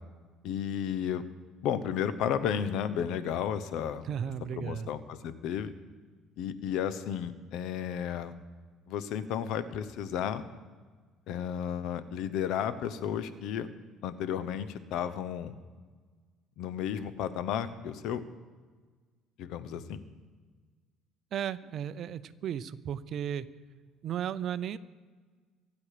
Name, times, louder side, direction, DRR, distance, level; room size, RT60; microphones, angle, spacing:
voice 1, 0.4-1.3 1.6-4.1 4.6-5.7 6.4-8.3 8.9-10.4 11.3-13.7 14.0-15.5 16.6-18.2 19.4-20.0, left 9 dB, 70° left, 13 dB, 1.0 m, -33 dB
voice 2, 4.0-4.9 21.3-23.5 24.0-24.8, right 9 dB, 55° right, 14 dB, 0.7 m, -35 dB
24.5 x 8.5 x 5.0 m, 1.5 s
cardioid pair, 110°, 0 cm